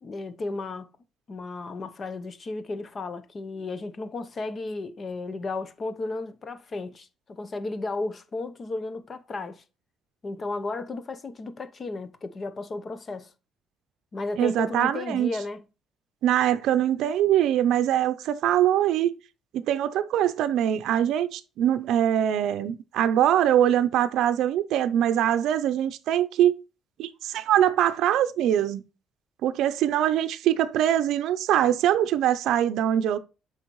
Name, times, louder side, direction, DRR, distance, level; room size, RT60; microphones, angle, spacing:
voice 1, 0.0-0.9 1.3-9.6 10.2-13.3 14.1-15.6, left 3 dB, 30° left, 0.8 m, -34 dB
voice 2, 14.4-15.3 16.2-19.1 19.7-26.5 27.0-28.8 29.4-33.2, right 11 dB, 70° right, 0.6 m, -23 dB
8.1 x 5.6 x 3.1 m
cardioid pair, 150°, 0 cm